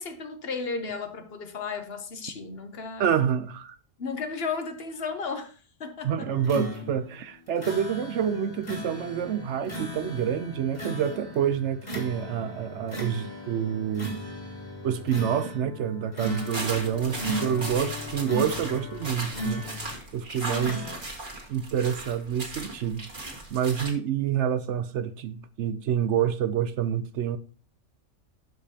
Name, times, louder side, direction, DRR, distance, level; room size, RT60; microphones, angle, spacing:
voice 1, 0.0-3.1 4.0-6.3 20.5-20.9, left 4 dB, 55° left, 1.1 m, -34 dB
voice 2, 3.0-3.8 6.0-14.1 14.8-19.6 20.1-20.8 21.5-23.1 23.5-27.4, right 8 dB, 70° right, 0.9 m, -27 dB
sound 1, 6.3-20.1 20.6-21.0, equal, 35° left, 1.8 m, -37 dB
sound 2, 16.2-23.9, right 2 dB, 40° right, 1.8 m, -37 dB
12.5 x 5.1 x 2.8 m
omnidirectional pair, 1.3 m